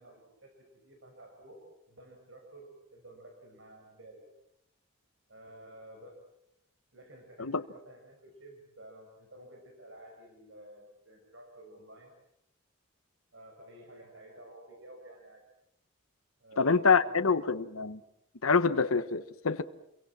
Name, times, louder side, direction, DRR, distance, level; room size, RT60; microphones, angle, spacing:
voice 1, 0.0-4.2 5.3-6.2 6.9-12.1 13.3-15.4 16.4-17.2, right 1 dB, 65° right, 5.9 m, -52 dB
voice 2, 16.6-18.0 18.4-19.6, left 4 dB, 85° left, 1.1 m, -26 dB
29.5 x 23.5 x 7.5 m
head